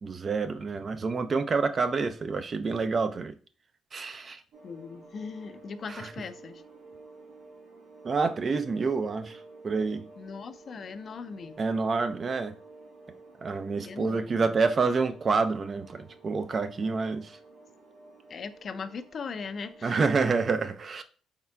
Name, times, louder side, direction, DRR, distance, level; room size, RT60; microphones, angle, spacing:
voice 1, 0.0-3.3 3.9-4.4 6.0-6.1 8.0-10.1 11.6-12.6 13.4-17.4 19.8-21.0, right 4 dB, 40° right, 0.4 m, -28 dB
sound 1, 4.5-20.4, right 3 dB, 80° right, 1.3 m, -51 dB
voice 2, 4.6-6.6 10.2-11.6 13.8-14.6 18.3-19.9, left 5 dB, 50° left, 0.3 m, -39 dB
4.3 x 3.6 x 2.2 m
cardioid pair, 80°, 0 cm